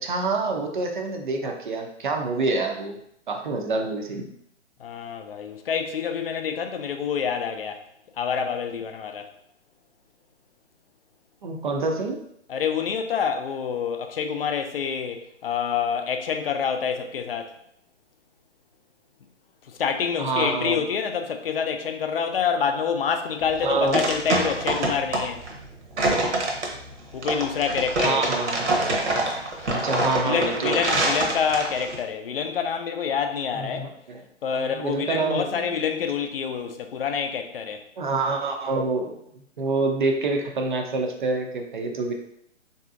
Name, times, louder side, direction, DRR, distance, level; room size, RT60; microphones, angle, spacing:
voice 1, 0.0-3.0 3.3-4.3 11.4-12.2 20.2-20.8 23.6-24.1 28.0-28.7 29.7-30.8 33.5-34.2 34.5-35.6 38.0-39.1 39.6-42.1, right 3 dB, 40° right, 3 dB, 0.5 m, -26 dB
voice 2, 4.8-7.8 8.2-9.3 12.5-17.5 19.7-25.4 27.1-28.2 30.1-33.9 34.4-37.8, left 7 dB, 50° left, 6 dB, 0.5 m, -27 dB
sound 1, 23.4-32.0, right 2 dB, 65° right, 0.9 m, -26 dB
3.7 x 2.7 x 2.4 m, 0.74 s
figure-of-eight pair, 130°, 37 cm